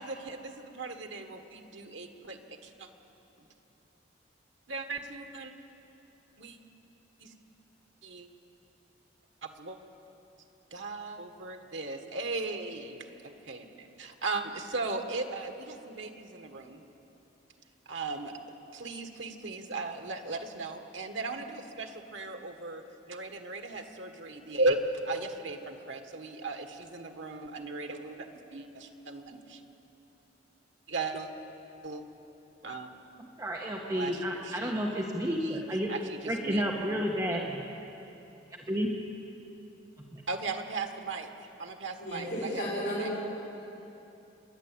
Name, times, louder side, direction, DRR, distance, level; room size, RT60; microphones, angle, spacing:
voice 1, 0.0-2.9 4.7-5.5 6.4-6.6 7.2-7.3 8.0-8.3 9.4-9.8 10.7-16.8 17.9-18.4 18.7-24.8 25.1-29.6 30.9-31.3 31.8-32.0 32.6-32.9 33.9-34.7 35.4-35.6 35.9-36.6 40.3-41.3 41.6-43.1, right 3 dB, 80° right, 5 dB, 1.7 m, -37 dB
voice 2, 33.2-35.9 36.2-37.6 38.6-38.9 40.1-40.2, equal, 20° right, -1 dB, 1.3 m, -31 dB
voice 3, 42.0-43.1, equal, 55° left, -9 dB, 5.5 m, -33 dB
27.5 x 11.0 x 8.8 m, 2.9 s
head